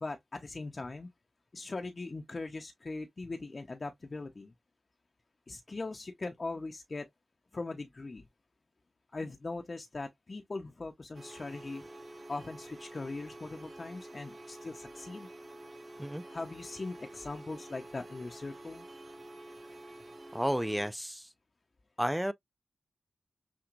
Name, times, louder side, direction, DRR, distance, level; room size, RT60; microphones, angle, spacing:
voice 1, 0.0-1.1 1.5-4.5 5.5-7.1 7.5-8.3 9.1-11.8 12.3-15.3 16.3-18.8, left 3 dB, 45° left, 0.6 m, -40 dB
sound 1, 11.1-20.9, right 1 dB, 50° right, 1.6 m, -49 dB
voice 2, 20.3-21.3 22.0-22.3, equal, 5° right, 0.4 m, -32 dB
5.9 x 2.2 x 2.5 m
cardioid pair, 60°, 0 cm